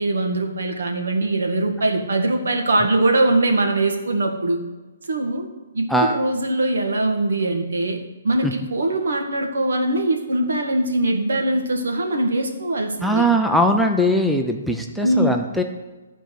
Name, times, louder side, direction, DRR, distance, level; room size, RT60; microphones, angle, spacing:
voice 1, 0.0-4.6 5.1-5.5 5.7-8.0 8.2-13.2 15.0-15.4, right 2 dB, 85° right, 3 dB, 1.7 m, -22 dB
voice 2, 13.0-15.6, equal, ahead, 3 dB, 0.3 m, -20 dB
12.5 x 4.5 x 6.4 m, 1.2 s
hypercardioid pair, 180°, 0 cm